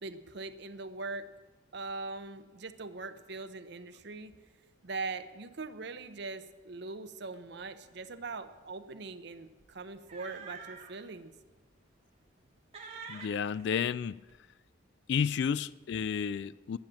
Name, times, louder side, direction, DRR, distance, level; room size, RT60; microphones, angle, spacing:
voice 1, 0.0-1.3 1.7-4.3 4.8-11.3, right 3 dB, 60° right, 0.7 m, -41 dB
sound 1, 7.8-8.0 8.3-8.5 9.6-11.0 11.5-11.6 12.1-12.5 12.7-14.3, right 5 dB, 30° right, 2.0 m, -48 dB
voice 2, 13.1-14.2 15.1-16.8, left 7 dB, 60° left, 0.3 m, -31 dB
10.5 x 10.5 x 7.5 m
head